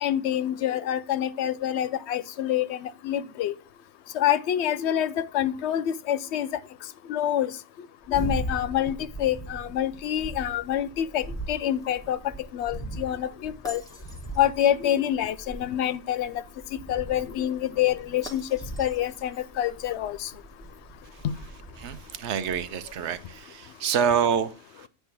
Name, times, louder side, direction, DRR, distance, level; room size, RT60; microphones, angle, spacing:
voice 1, 0.0-3.5 4.1-6.5 7.1-7.5 8.1-12.2 12.5-13.8 14.4-16.4 16.9-20.3, left 11 dB, 70° left, 0.8 m, -27 dB
sound 1, 8.0-23.2, right 1 dB, 5° left, 1.2 m, -39 dB
voice 2, 21.8-24.9, right 7 dB, 70° right, 0.9 m, -27 dB
9.1 x 3.4 x 5.8 m
omnidirectional pair, 1.3 m